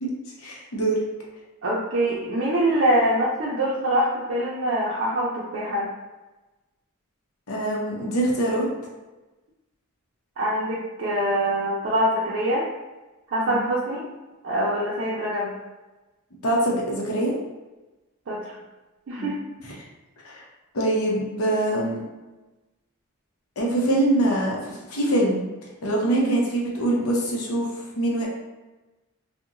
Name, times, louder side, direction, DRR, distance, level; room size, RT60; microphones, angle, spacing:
voice 1, 0.4-1.0 7.5-8.7 13.5-13.6 16.4-17.3 19.2-19.3 20.2-20.4 20.7-22.0 23.6-25.4 25.8-28.3, right 1 dB, 90° left, -3 dB, 0.7 m, -24 dB
voice 2, 1.6-5.9 10.4-12.6 13.3-14.0 14.4-15.5 18.3-18.5 19.1-19.4 26.2-26.3, right 1 dB, 60° right, -6 dB, 0.4 m, -24 dB
2.8 x 2.1 x 2.4 m, 1.1 s
head